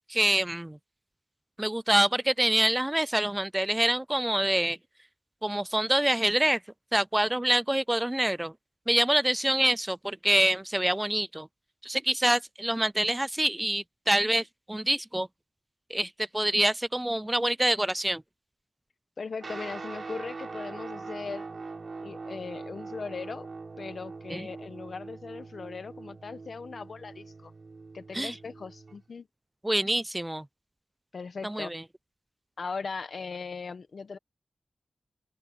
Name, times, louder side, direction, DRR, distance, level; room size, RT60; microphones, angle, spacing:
voice 1, 0.1-0.8 1.6-4.8 5.4-6.6 6.9-8.5 8.9-11.5 11.8-15.3 15.9-18.2 24.3-24.5 28.1-28.3 29.6-30.4 31.4-31.8, right 1 dB, 15° right, 0.4 m, -26 dB
voice 2, 19.2-21.4 22.0-23.5 23.8-27.5 27.9-29.3 31.1-31.7 32.6-34.2, left 4 dB, 65° left, 1.5 m, -39 dB
Guitar, 19.4-29.0, right 4 dB, 55° right, 5.0 m, -42 dB
open air
cardioid pair, 65°, 0 cm